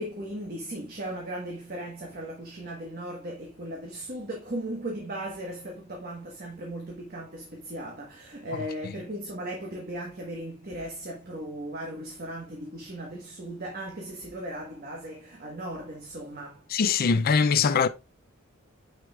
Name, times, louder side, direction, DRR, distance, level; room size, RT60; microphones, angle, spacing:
voice 1, 0.0-16.7, right 1 dB, 45° right, 1.3 m, -37 dB
voice 2, 16.7-17.9, left 5 dB, 45° left, 0.4 m, -22 dB
9.1 x 4.8 x 2.4 m
head